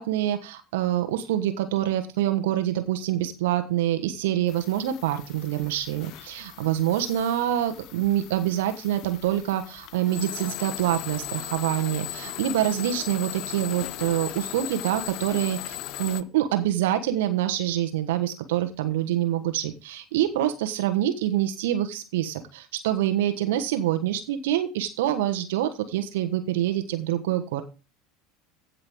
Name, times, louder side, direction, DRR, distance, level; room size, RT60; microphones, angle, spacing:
voice 1, 0.0-27.6, right 12 dB, 65° right, 7 dB, 1.3 m, -26 dB
sound 1, 4.5-16.2, left 14 dB, 50° left, 0.7 m, -38 dB
15.5 x 5.6 x 3.7 m, 0.30 s
figure-of-eight pair, 75°, 0 cm